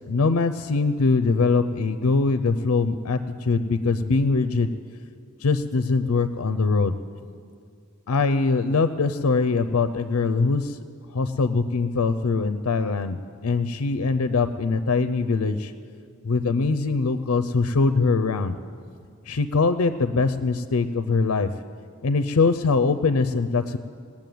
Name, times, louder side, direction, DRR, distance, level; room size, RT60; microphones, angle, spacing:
voice 1, 0.1-4.7 5.4-6.9 8.1-10.8 11.1-15.7 16.2-18.5 19.3-21.5 22.0-23.8, left 4 dB, 75° left, 11 dB, 0.5 m, -22 dB
18.5 x 7.3 x 9.2 m, 2.2 s
head